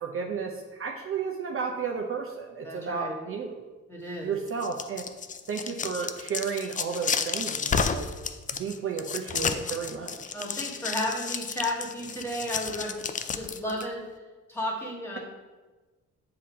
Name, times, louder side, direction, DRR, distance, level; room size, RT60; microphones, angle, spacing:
voice 1, 0.0-3.6 4.2-5.1 5.5-8.1 8.5-10.3, right 6 dB, 45° right, 1 dB, 0.7 m, -33 dB
voice 2, 2.6-3.2 3.9-4.3 10.3-13.0 13.3-14.1 14.5-15.2, left 1 dB, 10° left, -2 dB, 1.8 m, -33 dB
sound 1, 4.5-13.8, left 6 dB, 25° left, 0.4 m, -31 dB
7.3 x 2.9 x 5.1 m, 1.3 s
cardioid pair, 90°, 30 cm